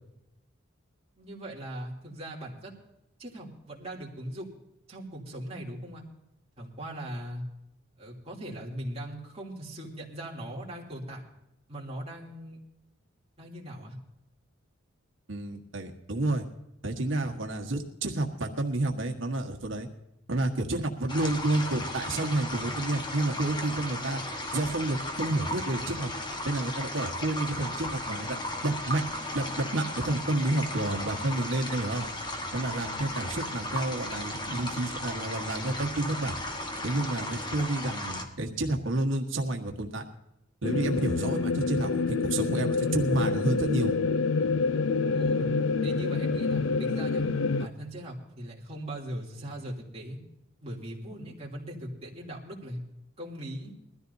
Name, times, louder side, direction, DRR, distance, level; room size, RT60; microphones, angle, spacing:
voice 1, 1.2-2.7 3.2-4.5 4.9-6.0 6.6-7.4 8.0-11.2 11.7-12.6 13.4-14.0 45.1-45.5 45.8-47.2 47.6-50.2 50.6-52.8 53.2-53.7, right 1 dB, 30° right, -3 dB, 2.9 m, -39 dB
voice 2, 15.3-16.5 16.8-19.9 20.3-24.2 24.5-26.1 26.4-28.4 28.6-29.0 29.3-32.1 32.5-36.3 36.8-40.0 40.6-44.0, right 2 dB, 75° right, 3 dB, 1.5 m, -30 dB
sound 1, 21.1-38.3, left 1 dB, 25° left, 1.3 m, -35 dB
sound 2, 40.6-47.7, left 4 dB, 80° left, 0.5 m, -27 dB
21.0 x 14.0 x 2.7 m, 0.87 s
head